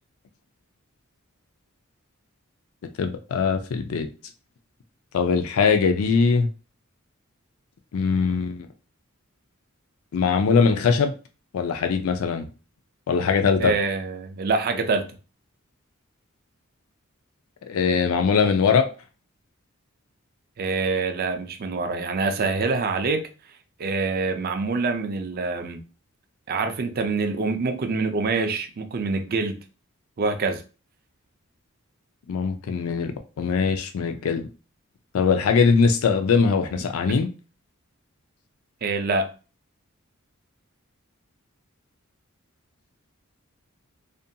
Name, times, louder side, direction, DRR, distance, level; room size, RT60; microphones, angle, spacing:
voice 1, 3.0-4.1 5.1-6.5 7.9-8.7 10.1-11.1 11.5-12.5 13.1-13.7 17.7-18.9 32.3-34.5 35.1-37.3, left 5 dB, 80° left, 0.4 m, -21 dB
voice 2, 13.6-15.1 20.6-23.2 23.8-25.8 26.5-29.6 30.2-30.6 36.7-36.8 37.1-37.2 38.8-39.3, right 3 dB, 45° right, 0.4 m, -25 dB
2.5 x 2.2 x 2.7 m
head